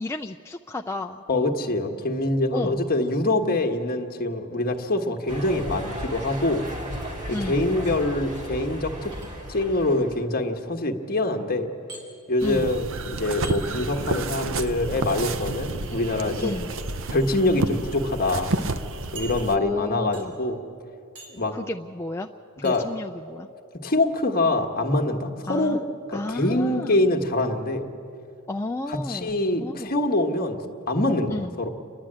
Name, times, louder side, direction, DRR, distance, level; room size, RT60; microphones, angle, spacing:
voice 1, 0.0-1.2 2.5-2.8 7.3-7.7 12.4-12.7 16.4-16.7 19.5-20.3 21.5-22.3 22.6-23.5 25.5-25.8 26.1-27.0 28.5-29.9 31.3-31.5, left 2 dB, 10° left, 3 dB, 0.4 m, -32 dB
voice 2, 1.3-6.6 7.3-9.1 9.5-11.7 12.3-16.6 17.1-18.5 19.1-20.6 21.3-21.5 22.6-22.8 23.8-25.8 26.1-27.9 28.9-30.6 30.9-31.7, left 2 dB, 40° left, 4 dB, 1.4 m, -24 dB
sound 1, 5.3-10.2, equal, 35° right, 2.5 m, -36 dB
sound 2, 9.1-9.7 11.9-12.0 13.4-13.6 15.1-15.2 16.5-16.8 17.6-17.7 18.0-18.1 19.2-19.8 20.1-20.5 21.2-21.5 22.6-22.8, right 3 dB, 85° right, 4.0 m, -43 dB
sound 3, 12.4-19.6, right 2 dB, 60° right, 0.8 m, -30 dB
29.0 x 11.5 x 8.8 m, 2.7 s
head